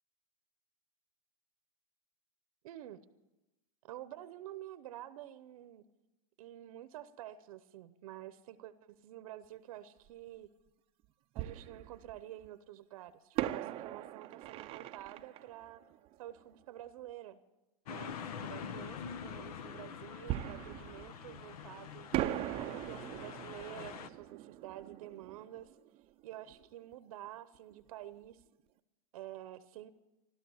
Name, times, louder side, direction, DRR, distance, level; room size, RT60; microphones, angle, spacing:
voice 1, 2.6-3.0 3.9-5.8 6.4-10.5 11.3-15.8 16.2-17.4 17.9-22.1 22.6-25.7 26.2-28.4 29.1-29.9, right 13 dB, 65° right, 13 dB, 0.8 m, -49 dB
Fireworks, 10.1-10.2 11.4-12.5 13.4-16.8 20.3-21.7 22.1-26.7 26.9-27.0 27.5-27.8, right 13 dB, 30° right, 0.5 m, -40 dB
sound 1, 17.9-24.1, left 7 dB, 75° left, 1.0 m, -45 dB
15.0 x 12.5 x 7.1 m, 1.0 s
supercardioid pair, 145°, 19 cm